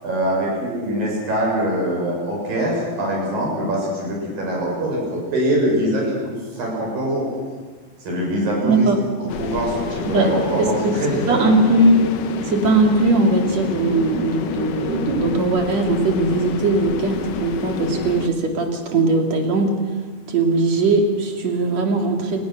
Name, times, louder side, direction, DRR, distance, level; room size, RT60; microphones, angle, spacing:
voice 1, 0.0-6.2 6.5-7.3 8.0-8.9 9.4-11.5, right 1 dB, 75° right, -2 dB, 8.2 m, -23 dB
voice 2, 8.6-9.0 10.1-12.0 12.4-19.7 20.3-22.4, right 2 dB, 50° right, 3 dB, 3.6 m, -19 dB
sound 1, 9.3-18.3, left 7 dB, 70° left, 2.8 m, -28 dB
29.0 x 19.0 x 6.5 m, 1.4 s
omnidirectional pair, 4.1 m